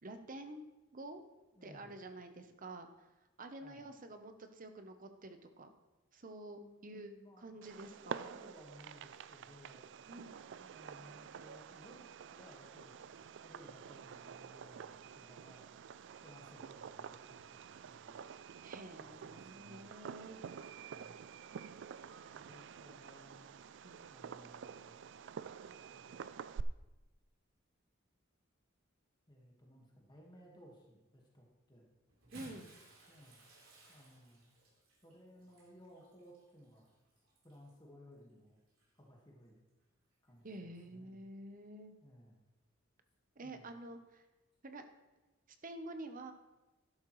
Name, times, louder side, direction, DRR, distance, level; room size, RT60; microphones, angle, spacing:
voice 1, 0.0-1.2 1.6-3.1 3.4-5.7 6.1-7.1 7.4-8.3 10.1-10.4 18.6-20.4 22.2-22.7 23.8-24.1 32.3-32.7 40.4-41.9 43.4-44.2 44.6-44.9 45.6-46.3, right 2 dB, 40° right, 7 dB, 0.9 m, -49 dB
voice 2, 1.5-1.9 3.6-3.9 6.6-7.6 8.0-9.9 10.5-12.0 12.3-13.0 13.4-15.7 16.2-18.2 19.0-19.9 20.9-21.2 22.3-23.5 24.1-25.1 25.9-26.2 29.3-31.9 33.1-33.4 33.9-34.4 35.0-36.9 37.4-38.6 38.9-39.6 40.2-41.2 42.0-42.4 43.4-43.7, equal, 20° left, -1 dB, 1.7 m, -59 dB
Fireworks, 7.6-26.6, right 7 dB, 60° right, 0.4 m, -49 dB
Bathtub (filling or washing) / Splash splatter, 32.1-37.8 38.7-38.8 40.3-40.4, right 1 dB, 80° right, 4.0 m, -60 dB
12.5 x 11.5 x 3.2 m, 1.1 s
head